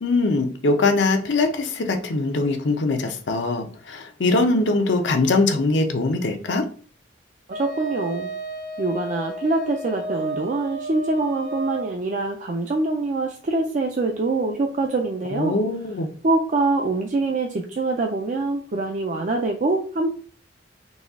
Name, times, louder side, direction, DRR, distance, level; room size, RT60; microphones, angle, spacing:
voice 1, 0.0-6.6 15.3-16.1, left 3 dB, 80° left, 5 dB, 0.7 m, -22 dB
voice 2, 7.5-8.3 8.8-15.6 16.2-20.1, right 2 dB, 45° right, 2 dB, 0.4 m, -24 dB
Wind instrument woodwind instrument, 7.5-11.9, right 2 dB, 90° right, 1.3 m, -33 dB
4.1 x 2.3 x 3.5 m, 0.42 s
head